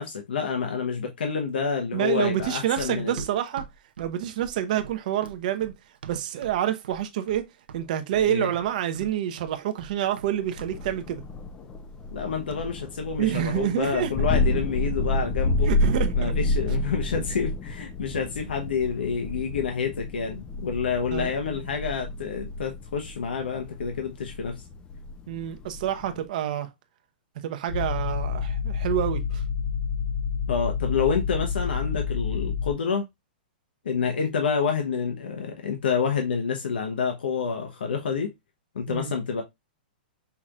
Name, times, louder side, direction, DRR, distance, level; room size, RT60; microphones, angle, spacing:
voice 1, 0.0-3.2 8.3-8.5 12.1-15.7 16.2-24.6 30.5-33.0 33.8-38.3 38.7-39.4, left 6 dB, 90° left, 1.0 m, -28 dB
voice 2, 1.9-3.6 4.0-5.7 6.1-7.5 7.7-11.2 13.2-14.1 15.6-16.3 21.1-21.6 25.3-26.7 27.4-29.4 32.3-32.4 38.9-39.1, right 11 dB, 55° right, 0.8 m, -28 dB
Run, 2.4-6.6 6.8-7.4 7.7-10.3 10.6-10.8, right 7 dB, 80° right, 0.7 m, -42 dB
Thunder, 10.5-26.3, left 2 dB, 15° left, 0.5 m, -30 dB
sound 1, 27.7-32.7, left 6 dB, 45° left, 1.2 m, -28 dB
5.8 x 3.0 x 2.4 m
hypercardioid pair, 155°, 5 cm